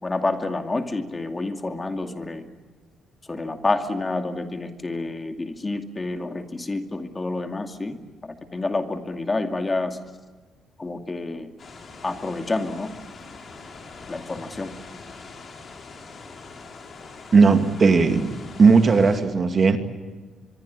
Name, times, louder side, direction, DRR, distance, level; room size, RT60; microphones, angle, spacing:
voice 1, 0.0-2.5 3.2-10.0 10.8-11.5 12.0-12.9 14.1-14.7, left 2 dB, 25° left, 7 dB, 2.4 m, -28 dB
sound 1, 11.6-19.2, left 4 dB, 45° left, 5.1 m, -43 dB
voice 2, 17.3-18.3 18.6-19.8, right 4 dB, 40° right, 7 dB, 2.5 m, -16 dB
25.0 x 23.5 x 8.5 m, 1.4 s
cardioid pair, 90°, 0 cm